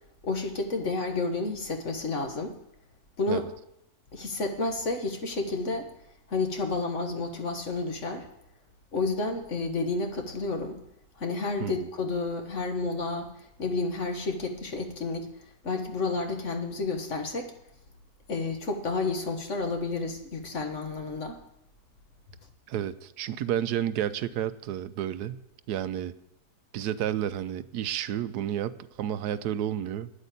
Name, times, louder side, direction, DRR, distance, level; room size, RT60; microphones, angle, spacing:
voice 1, 0.2-2.5 3.2-3.4 4.1-5.9 6.3-8.3 8.9-10.8 11.2-13.3 13.6-15.3 15.6-17.5 18.3-21.4, left 3 dB, 50° left, 4 dB, 1.7 m, -30 dB
voice 2, 22.7-25.4 25.7-26.1 26.7-30.1, right 10 dB, 90° right, 14 dB, 1.2 m, -31 dB
10.0 x 8.2 x 8.5 m, 0.79 s
omnidirectional pair, 1.7 m